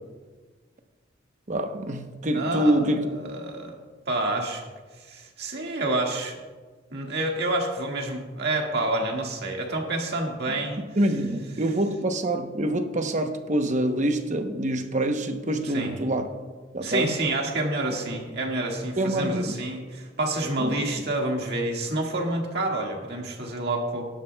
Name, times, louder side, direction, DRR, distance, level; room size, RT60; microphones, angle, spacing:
voice 1, 1.5-3.1 10.5-10.6 11.0-16.3 16.7-17.2 19.0-19.6 20.6-20.8, right 1 dB, 40° right, 0.9 m, -26 dB
voice 2, 2.3-3.8 4.1-4.6 5.0-6.4 6.9-10.8 15.7-15.9 16.8-24.0, right 2 dB, 55° right, 1.8 m, -28 dB
17.5 x 11.0 x 2.3 m
head